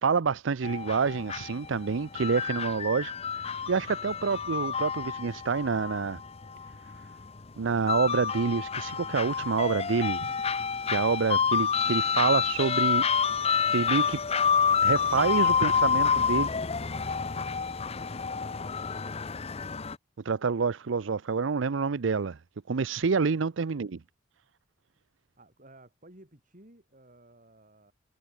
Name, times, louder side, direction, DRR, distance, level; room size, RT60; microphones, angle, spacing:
voice 1, 0.0-6.2 7.6-10.3 10.9-13.1 13.7-14.2 14.8-16.5 20.2-22.4 22.7-24.0, right 5 dB, 80° right, 0.6 m, -27 dB
sound 1, 0.6-20.0, left 6 dB, 30° left, 0.7 m, -28 dB
voice 2, 25.4-27.9, right 1 dB, 45° right, 7.0 m, -55 dB
head